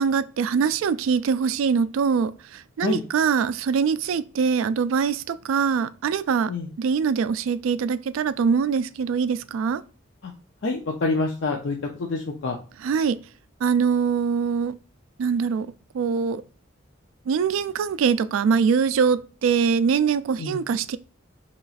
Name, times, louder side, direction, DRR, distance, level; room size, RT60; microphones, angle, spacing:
voice 1, 0.0-6.5 6.8-9.8 12.8-13.2 13.6-14.7 15.2-16.4 17.3-21.0, right 6 dB, 80° right, 0.3 m, -23 dB
voice 2, 10.6-12.6 20.4-20.6, left 3 dB, 65° left, 0.5 m, -27 dB
4.0 x 3.0 x 2.4 m
head